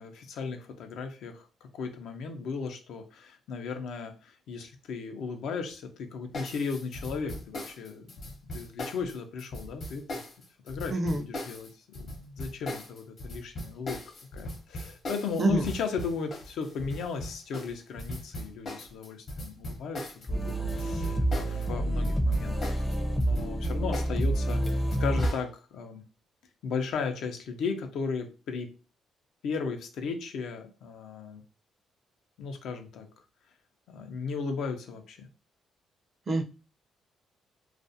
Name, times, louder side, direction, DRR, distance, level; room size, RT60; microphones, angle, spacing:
voice 1, 0.0-1.5 1.7-10.2 10.6-11.7 11.9-14.0 14.3-26.0 26.6-28.7 29.4-31.4 32.4-33.1 33.9-35.3, left 5 dB, 80° left, 5 dB, 0.5 m, -36 dB
sound 1, 6.3-21.7 21.9-25.4, left 1 dB, 50° left, 0.8 m, -39 dB
voice 2, 10.9-11.2 15.4-15.7 36.3-36.4, right 2 dB, 40° right, 6 dB, 0.5 m, -25 dB
sound 2, 20.3-25.3, right 1 dB, 20° left, 0.5 m, -28 dB
2.4 x 2.1 x 2.6 m, 0.33 s
cardioid pair, 90°, 0 cm